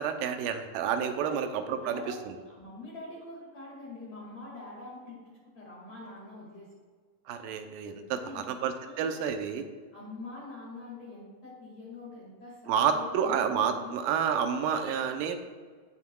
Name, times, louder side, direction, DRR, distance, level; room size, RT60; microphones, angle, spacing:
voice 1, 0.0-2.0 2.3-2.4 7.3-9.6 12.7-15.4, right 7 dB, 90° right, 7 dB, 2.4 m, -29 dB
voice 2, 1.8-6.7 8.1-8.5 8.8-9.5 9.9-13.4 13.7-13.9, left 2 dB, 50° left, -6 dB, 2.9 m, -45 dB
17.0 x 5.9 x 2.3 m, 1.6 s
omnidirectional pair, 3.9 m